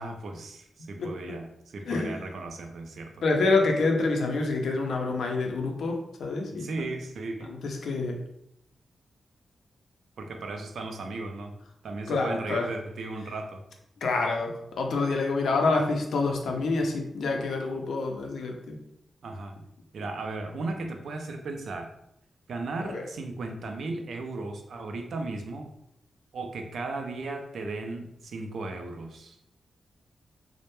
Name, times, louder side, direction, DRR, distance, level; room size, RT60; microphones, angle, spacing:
voice 1, 0.0-3.1 6.5-7.5 10.2-11.5 11.8-13.6 19.2-19.6 19.9-21.9 22.5-25.7 26.3-29.4, right 3 dB, 75° right, 4 dB, 0.3 m, -36 dB
voice 2, 1.0-1.4 1.9-2.2 3.2-6.7 7.4-8.2 12.1-12.7 14.0-18.8 22.8-23.0, left 3 dB, 90° left, 2 dB, 0.4 m, -27 dB
2.1 x 2.0 x 2.9 m, 0.77 s
wide cardioid pair, 120°, 0 cm